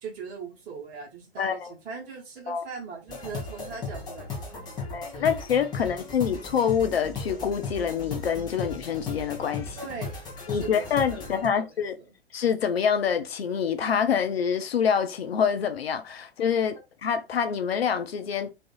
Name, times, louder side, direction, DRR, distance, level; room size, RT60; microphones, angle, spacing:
voice 1, 0.0-5.3 5.7-5.9 9.7-10.2 10.5-11.8 12.1-12.2, right 5 dB, 25° right, 0.9 m, -41 dB
voice 2, 1.4-1.7 2.5-2.6 4.9-9.8 10.5-11.9 12.3-18.5, left 7 dB, 70° left, 0.5 m, -26 dB
sound 1, 3.1-11.5, left 4 dB, 15° left, 0.6 m, -37 dB
2.4 x 2.4 x 2.2 m
figure-of-eight pair, 105°, 31 cm